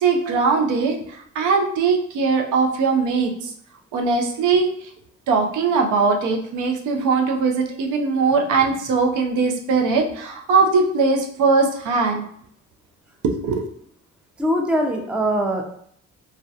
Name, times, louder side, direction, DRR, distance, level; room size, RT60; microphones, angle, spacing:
voice 1, 0.0-1.0 1.4-3.5 3.9-4.7 5.3-12.3 13.2-13.6, right 4 dB, 90° right, 3 dB, 0.5 m, -20 dB
voice 2, 14.4-15.6, equal, 5° right, 3 dB, 0.3 m, -21 dB
2.3 x 2.1 x 2.6 m, 0.64 s
cardioid pair, 90°, 30 cm